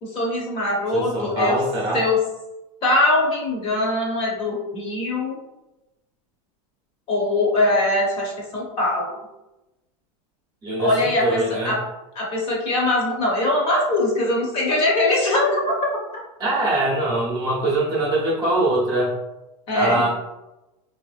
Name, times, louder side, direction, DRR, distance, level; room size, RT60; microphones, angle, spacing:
voice 1, 0.0-1.6 1.9-2.2 2.8-5.4 7.1-9.2 10.8-11.8 12.1-15.7 19.7-20.1, left 2 dB, 30° left, -3 dB, 0.9 m, -22 dB
voice 2, 0.9-2.0 10.6-11.8 16.4-19.1 19.7-20.1, right 2 dB, 20° right, -5 dB, 0.8 m, -23 dB
4.1 x 2.6 x 2.4 m, 0.97 s
supercardioid pair, 165°, 19 cm